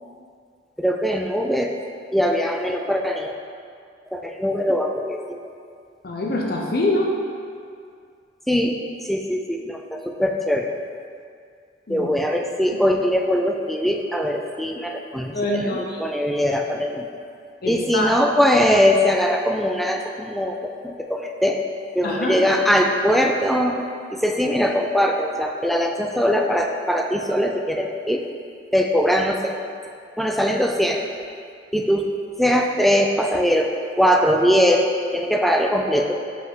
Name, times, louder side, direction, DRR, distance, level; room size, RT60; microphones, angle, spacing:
voice 1, 0.8-1.7 2.1-3.3 4.1-5.2 8.5-8.8 9.0-10.7 11.9-17.1 17.7-21.6 22.0-28.3 28.7-29.6 30.2-31.0 31.7-32.0 32.4-33.7 34.0-36.1, equal, ahead, 2 dB, 0.3 m, -21 dB
voice 2, 6.0-7.1 11.9-12.1 15.3-16.0 17.6-18.2 22.0-22.4, left 1 dB, 55° left, -1 dB, 0.7 m, -24 dB
5.7 x 5.3 x 3.6 m, 2.3 s
head